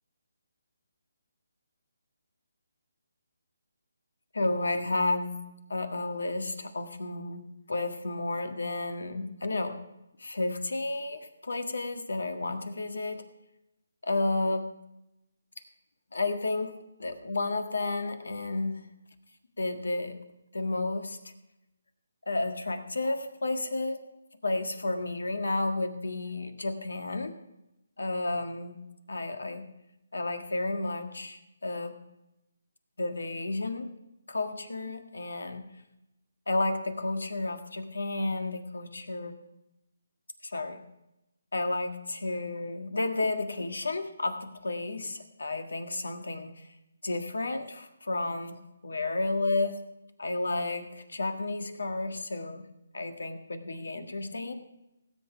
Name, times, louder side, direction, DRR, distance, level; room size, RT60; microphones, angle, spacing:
voice 1, 4.3-5.4 5.7-7.4 7.7-9.8 10.2-13.2 14.0-14.7 16.1-18.8 19.6-20.2 20.5-21.3 22.3-24.0 24.4-27.3 28.0-28.8 29.1-29.6 30.1-31.9 33.0-33.9 34.3-35.6 36.5-39.3 40.4-40.8 41.5-46.7 47.0-48.6 48.8-49.8 50.2-52.6 52.9-54.5, left 2 dB, 85° left, 7 dB, 1.6 m, -32 dB
17.0 x 8.1 x 5.0 m, 0.90 s
hypercardioid pair, 155°, 0 cm